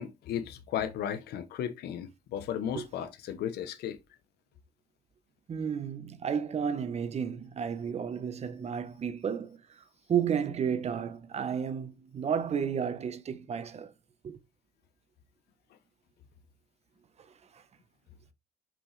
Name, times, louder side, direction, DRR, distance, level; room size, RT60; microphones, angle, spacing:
voice 1, 0.0-4.0, left 9 dB, 80° left, 1.0 m, -35 dB
voice 2, 2.7-3.1 5.5-9.6 10.1-13.9 14.2-14.4 17.5-17.6, right 7 dB, 40° right, 1.1 m, -32 dB
5.8 x 5.1 x 3.3 m
cardioid pair, 120°, 16 cm